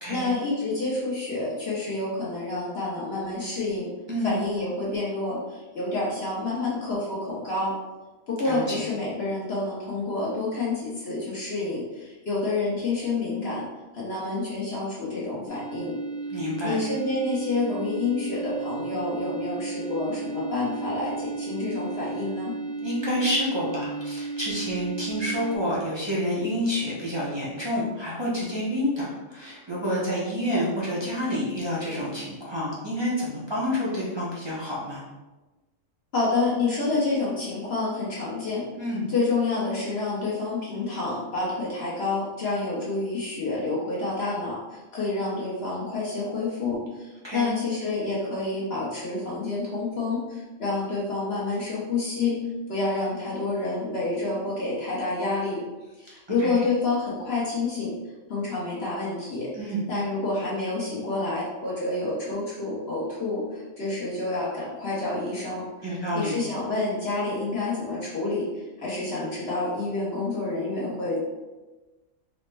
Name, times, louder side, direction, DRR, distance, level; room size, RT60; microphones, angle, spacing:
voice 1, 0.1-3.9 4.2-7.7 8.3-13.7 13.9-16.0 16.6-22.5 36.1-38.6 39.1-52.4 52.7-55.6 56.0-57.9 58.3-71.2, left 3 dB, 55° left, -7 dB, 0.9 m, -28 dB
voice 2, 8.4-8.9 16.3-16.8 22.8-35.0 38.8-39.1 47.2-47.5 56.4-56.5 59.5-59.8 65.8-66.4, equal, 30° right, -7 dB, 0.5 m, -28 dB
sound 1, 15.5-25.6, right 3 dB, 80° left, 1.2 m, -34 dB
4.1 x 2.0 x 3.2 m, 1.1 s
omnidirectional pair, 1.4 m